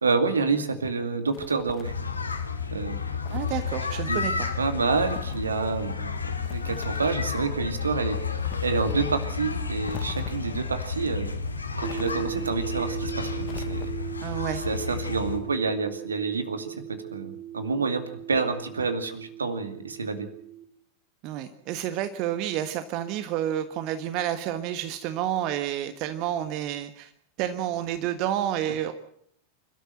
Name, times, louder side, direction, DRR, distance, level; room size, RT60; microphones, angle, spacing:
voice 1, 0.0-1.9 2.7-3.0 4.1-4.2 4.6-6.1 6.5-8.3 8.6-11.3 11.8-13.9 14.6-18.0 18.3-20.3, right 4 dB, 75° right, 9 dB, 2.3 m, -28 dB
sound 1, 1.3-2.1 3.2-3.7 4.9-5.5 6.4-7.2 8.4-9.0 9.9-10.6 11.8-12.5 13.4-14.2, left 11 dB, 35° left, 1.2 m, -44 dB
sound 2, 1.8-15.4, left 5 dB, 80° left, 2.2 m, -31 dB
voice 2, 3.3-4.5 14.2-14.6 21.2-27.1 27.4-28.9, right 11 dB, 45° right, 10 dB, 1.4 m, -30 dB
sound 3, 11.8-20.6, right 11 dB, 15° right, 4.1 m, -38 dB
28.0 x 13.0 x 7.8 m, 0.69 s
figure-of-eight pair, 90°, 0 cm